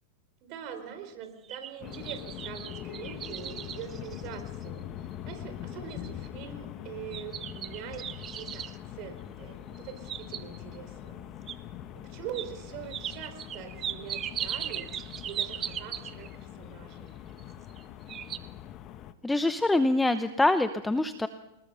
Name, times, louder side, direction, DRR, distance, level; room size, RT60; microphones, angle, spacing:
voice 1, 0.4-4.8 5.3-11.3 11.9-14.9 15.2-17.1, right 9 dB, 50° right, 8 dB, 4.3 m, -43 dB
sound 1, 1.2-4.8 5.3-5.4 5.9-6.3 7.1-8.8 9.8-10.8 11.5-11.6 12.3-12.5 12.9-16.4 17.4-17.8 18.1-18.4, right 10 dB, 30° right, 1.1 m, -38 dB
sound 2, 1.8-19.1, left 11 dB, 40° left, 1.3 m, -43 dB
voice 2, 19.2-21.3, left 2 dB, 5° left, 10 dB, 0.8 m, -25 dB
26.0 x 20.0 x 5.6 m, 0.97 s
hypercardioid pair, 120°, 0 cm